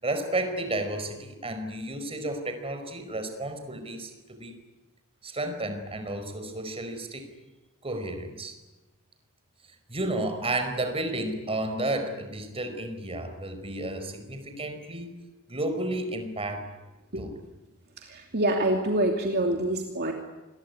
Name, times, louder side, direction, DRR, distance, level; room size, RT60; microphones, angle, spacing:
voice 1, 0.0-4.5 5.2-7.3 7.8-8.5 9.9-15.2 15.5-16.7 17.1-17.3, right 1 dB, 25° right, 7 dB, 4.9 m, -32 dB
voice 2, 18.0-20.1, right 1 dB, 45° right, 2 dB, 2.7 m, -26 dB
28.0 x 22.0 x 9.7 m, 1.1 s
head